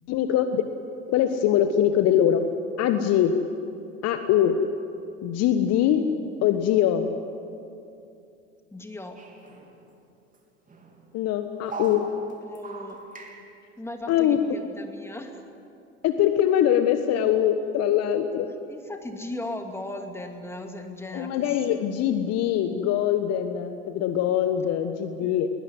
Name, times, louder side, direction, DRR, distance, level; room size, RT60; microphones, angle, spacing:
voice 1, 0.1-0.6 1.1-2.4 2.8-3.3 4.0-4.6 5.2-6.0 6.4-7.1 11.1-12.1 14.1-14.4 16.0-18.5 21.1-25.5, left 10 dB, 45° left, 9 dB, 1.3 m, -22 dB
voice 2, 8.7-9.2 12.4-13.0 13.8-15.4 18.7-21.8 25.2-25.4, left 1 dB, 5° left, 4 dB, 2.6 m, -37 dB
sound 1, 9.2-10.1 10.3-10.4 10.7-11.2 11.7-13.5, right 3 dB, 20° right, 3.6 m, -40 dB
21.0 x 20.5 x 9.6 m, 2.6 s
figure-of-eight pair, 75°, 35 cm